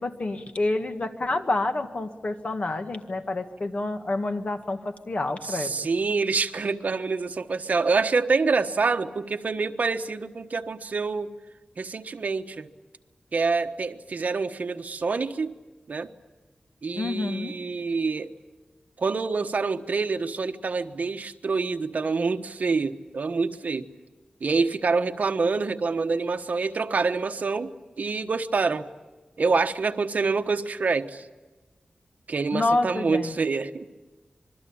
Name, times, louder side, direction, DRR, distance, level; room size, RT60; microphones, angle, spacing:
voice 1, 0.0-5.7 17.0-17.5 32.5-33.3, left 2 dB, 45° left, 7 dB, 1.8 m, -28 dB
voice 2, 5.4-11.3 11.8-12.7 13.3-15.5 15.9-16.1 16.8-18.3 19.0-23.9 24.4-28.9 29.4-31.3 32.3-33.9, right 4 dB, 60° right, 7 dB, 1.2 m, -26 dB
27.0 x 22.5 x 8.7 m, 1.2 s
wide cardioid pair, 130°, 3 cm